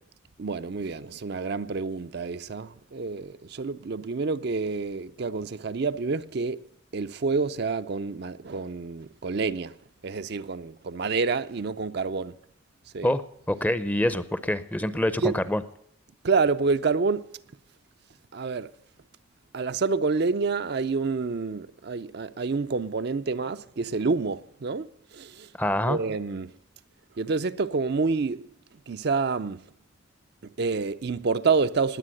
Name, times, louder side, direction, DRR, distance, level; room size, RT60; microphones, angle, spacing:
voice 1, 0.4-6.7 6.9-9.8 10.0-12.4 12.9-13.1 15.2-15.3 16.2-17.3 18.3-18.7 19.5-25.5 25.9-26.5 27.2-28.5 28.9-29.6 30.4-32.0, right 4 dB, 50° right, 0.5 m, -28 dB
voice 2, 13.0-15.6 25.6-26.0, left 1 dB, 10° left, 0.6 m, -26 dB
19.5 x 8.4 x 7.7 m
head